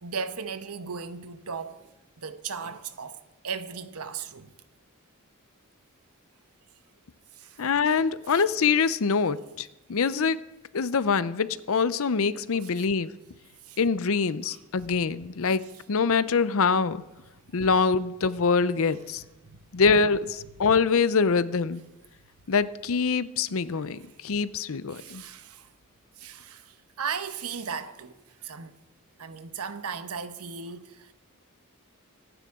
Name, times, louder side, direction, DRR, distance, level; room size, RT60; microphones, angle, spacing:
voice 1, 0.0-1.9 2.2-3.2 3.4-4.5 7.3-7.6 8.3-8.4 12.6-12.7 13.6-13.8 19.4-19.6 24.9-25.7 26.2-28.1 28.4-28.8 29.2-31.1, right 6 dB, 90° right, 1.0 m, -36 dB
voice 2, 7.6-10.4 10.7-13.1 13.8-17.0 17.5-19.2 19.7-21.8 22.5-25.2, left 5 dB, 70° left, 0.6 m, -24 dB
24.5 x 10.5 x 3.7 m
head